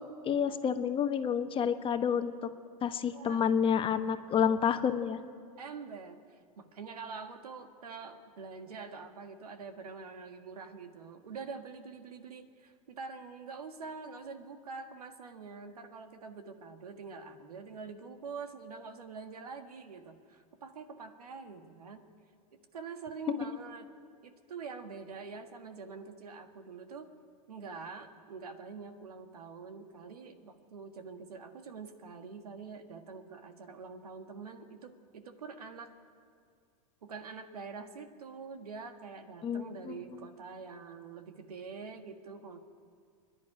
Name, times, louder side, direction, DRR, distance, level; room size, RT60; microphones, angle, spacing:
voice 1, 0.2-2.5 2.8-5.2 39.4-40.0, left 7 dB, 30° left, 8 dB, 1.2 m, -29 dB
voice 2, 5.6-22.0 22.7-23.9 24.2-27.1 27.5-35.9 37.0-42.6, right 5 dB, 85° right, 7 dB, 1.7 m, -45 dB
25.0 x 11.0 x 10.0 m, 2.2 s
hypercardioid pair, 105°, 19 cm